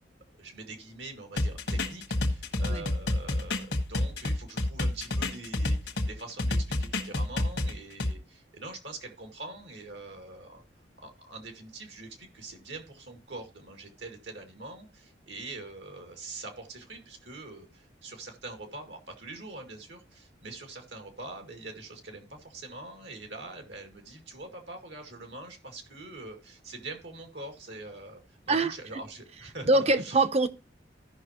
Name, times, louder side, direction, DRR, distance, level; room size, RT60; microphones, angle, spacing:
voice 1, 0.4-10.6 11.0-30.2, right 2 dB, 75° right, 2.2 m, -44 dB
sound 1, 1.4-6.1 6.4-8.1, left 1 dB, 75° left, 1.4 m, -28 dB
voice 2, 29.7-30.5, right 2 dB, 35° right, 0.8 m, -23 dB
16.0 x 5.8 x 3.0 m
head